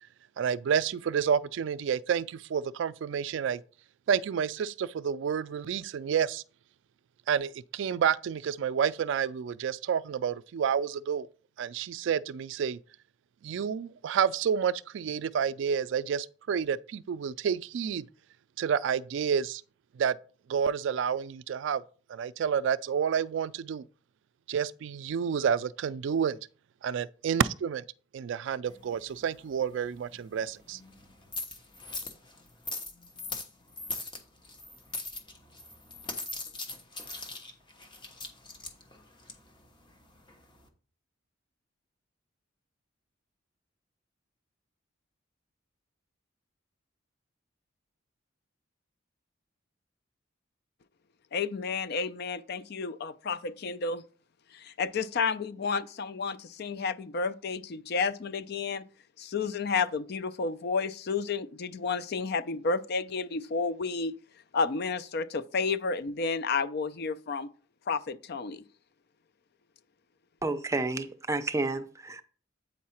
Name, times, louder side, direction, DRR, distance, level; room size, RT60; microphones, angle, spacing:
voice 1, 0.4-3.6 4.1-6.4 7.3-11.3 11.6-12.8 13.4-18.0 18.6-19.6 20.0-20.1 20.5-21.8 22.1-23.8 24.5-26.4 26.8-27.8 28.1-30.8, right 7 dB, 65° right, 0.3 m, -29 dB
sound 1, 28.6-40.7, left 3 dB, 25° left, 1.1 m, -42 dB
voice 2, 51.3-54.0 54.5-58.8 59.2-64.1 64.5-67.5 67.9-68.6, left 4 dB, 55° left, 0.5 m, -31 dB
voice 3, 70.4-72.2, right 2 dB, 15° right, 0.5 m, -30 dB
8.4 x 4.7 x 4.3 m
head